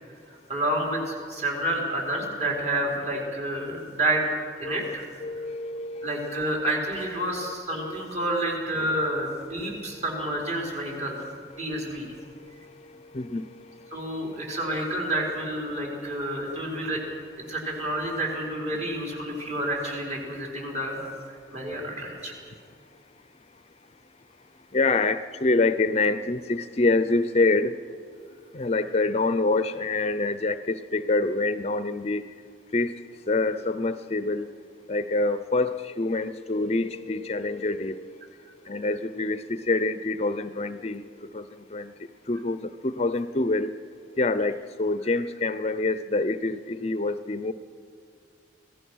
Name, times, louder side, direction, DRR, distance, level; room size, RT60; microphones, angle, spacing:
voice 1, 0.3-4.3 4.6-5.1 6.0-12.1 13.9-17.0 17.5-22.3, right 1 dB, 40° right, -2 dB, 4.6 m, -29 dB
voice 2, 5.2-6.4 7.7-8.0 9.7-9.8 11.6-14.4 24.7-27.8 28.5-32.2 32.7-34.5 34.9-38.2 38.7-41.1 41.3-41.9 42.3-43.7 44.2-47.5, left 2 dB, 35° left, 12 dB, 0.5 m, -26 dB
25.5 x 17.0 x 6.3 m, 2.3 s
head